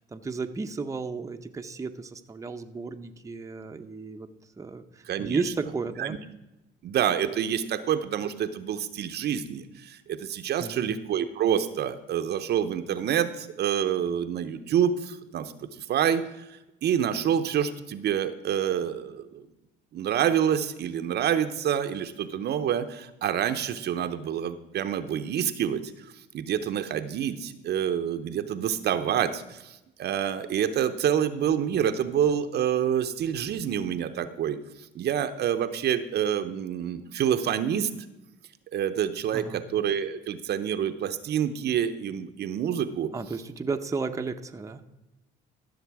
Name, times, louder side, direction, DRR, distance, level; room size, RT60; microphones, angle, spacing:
voice 1, 0.0-4.3 4.6-4.8 5.2-6.2 10.6-10.9 39.3-39.6 43.1-44.8, right 4 dB, 15° right, 5 dB, 0.7 m, -33 dB
voice 2, 5.1-5.5 6.0-6.2 6.8-16.2 16.5-19.5 19.9-34.6 34.9-37.9 38.7-43.1, right 9 dB, 55° right, 9 dB, 0.8 m, -27 dB
14.5 x 6.6 x 4.7 m, 0.96 s
supercardioid pair, 90°, 20 cm